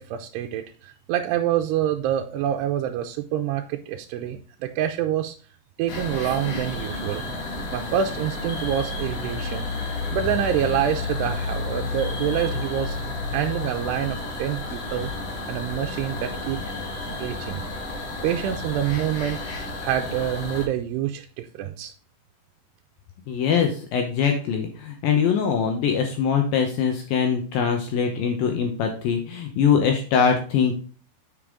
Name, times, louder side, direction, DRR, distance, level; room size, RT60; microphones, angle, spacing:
voice 1, 0.0-5.4 5.8-7.2 7.7-9.7 10.1-13.0 13.3-15.1 15.5-16.6 17.1-17.7 18.2-19.4 19.8-21.9, right 10 dB, 85° right, 4 dB, 2.6 m, -26 dB
sound 1, 5.9-20.7, left 3 dB, 50° left, 2.3 m, -31 dB
voice 2, 23.3-30.8, left 7 dB, 75° left, 3 dB, 2.4 m, -22 dB
8.2 x 5.3 x 3.6 m, 0.40 s
omnidirectional pair, 4.8 m